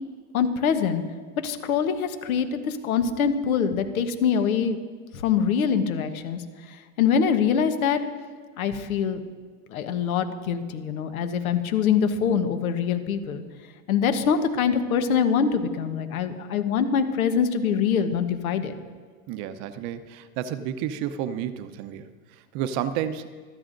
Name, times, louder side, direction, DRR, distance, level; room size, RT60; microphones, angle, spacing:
voice 1, 0.3-1.0 1.4-4.8 5.1-6.4 6.7-8.0 8.6-9.2 9.7-13.4 13.9-18.7, left 7 dB, 85° left, 8 dB, 1.3 m, -24 dB
voice 2, 19.3-23.3, right 9 dB, 50° right, 11 dB, 0.8 m, -31 dB
25.5 x 9.3 x 2.6 m, 1.5 s
supercardioid pair, 120°, 42 cm